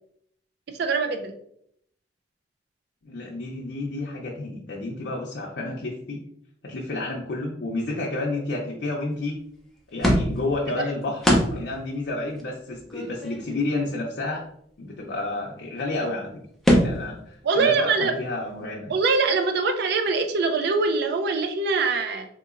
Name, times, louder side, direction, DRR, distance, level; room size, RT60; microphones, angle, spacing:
voice 1, 0.8-1.3 17.4-18.1 18.9-22.3, right 4 dB, 60° right, 6 dB, 0.4 m, -23 dB
voice 2, 3.0-6.2 6.6-9.4 9.9-11.2 11.5-14.5 14.8-16.3 16.7-18.9, left 2 dB, 70° left, -3 dB, 0.6 m, -30 dB
sound 1, 10.0-10.5 11.2-11.7 12.1-12.2 12.4-12.5 12.8-13.9 15.8-16.0 16.6-17.1, equal, ahead, 0.6 m, -22 dB
3.7 x 2.9 x 2.4 m, 0.69 s
head